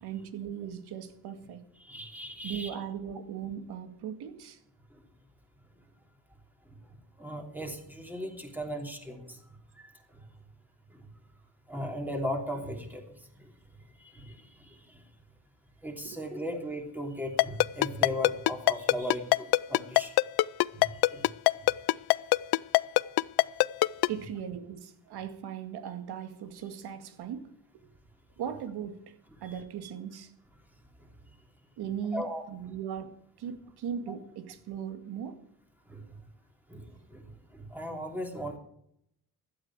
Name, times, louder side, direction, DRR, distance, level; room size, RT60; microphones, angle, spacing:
voice 1, 0.0-1.6 2.4-4.6 16.0-16.2 24.1-27.5 28.4-29.1 29.4-30.3 31.8-33.1 33.4-35.4, right 8 dB, 85° right, 8 dB, 2.1 m, -38 dB
voice 2, 1.8-2.7 4.9-5.0 6.6-6.8 7.2-10.3 10.9-11.1 11.7-13.5 14.0-15.0 15.8-20.1 20.7-21.3 21.5-21.7 23.0-23.1 29.4-29.5 31.0-31.1 32.1-32.7 35.9-36.0 36.7-38.6, equal, 5° right, 2 dB, 3.1 m, -38 dB
Ringtone, 17.4-24.1, left 20 dB, 80° left, 0.5 m, -21 dB
16.5 x 12.0 x 4.9 m, 0.72 s
cardioid pair, 140°, 38 cm